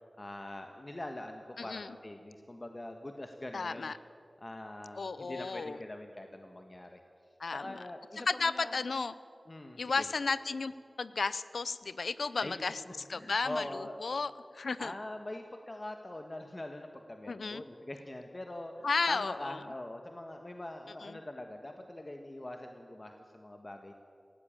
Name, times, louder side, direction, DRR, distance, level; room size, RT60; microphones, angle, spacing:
voice 1, 0.2-3.9 4.4-7.0 7.5-8.7 9.5-10.0 12.4-12.6 12.9-14.0 14.8-23.9, left 1 dB, 35° left, 4 dB, 1.5 m, -43 dB
voice 2, 1.6-2.0 3.5-4.0 5.0-5.8 7.4-7.8 8.3-9.1 9.8-12.8 13.1-14.9 17.3-17.6 18.8-19.6 21.0-21.2, left 4 dB, 90° left, 15 dB, 0.7 m, -34 dB
18.5 x 16.5 x 8.9 m, 2.3 s
wide cardioid pair, 50°, 0 cm